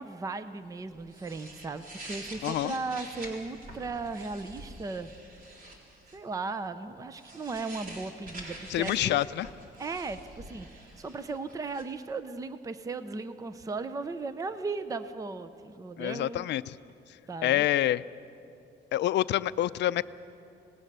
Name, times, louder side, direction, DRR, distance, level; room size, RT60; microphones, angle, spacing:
voice 1, 0.0-5.1 6.1-9.2 9.8-16.5 17.3-17.6, right 3 dB, 15° right, 12 dB, 0.6 m, -36 dB
sound 1, 0.9-6.2 7.1-11.8, right 1 dB, 45° right, 3.8 m, -46 dB
voice 2, 2.4-2.7 8.7-9.5 16.0-16.6 17.4-18.0 18.9-20.0, left 13 dB, 65° left, 15 dB, 0.5 m, -27 dB
26.0 x 19.0 x 6.7 m, 2.8 s
cardioid pair, 155°, 19 cm